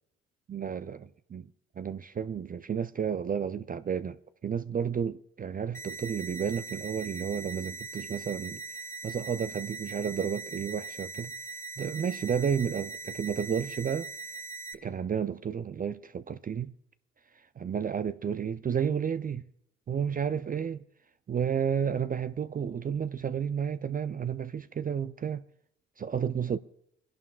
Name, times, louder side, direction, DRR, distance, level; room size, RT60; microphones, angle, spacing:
voice 1, 0.5-1.5 1.8-4.2 4.4-8.6 9.0-11.3 11.8-14.1 14.8-16.7 17.6-19.5 19.9-20.8 21.3-25.4 26.0-26.6, right 7 dB, 30° right, 0.4 m, -31 dB
sound 1, 5.7-14.7, right 4 dB, 10° left, 1.3 m, -41 dB
24.5 x 11.0 x 2.4 m
hypercardioid pair, 50°, 31 cm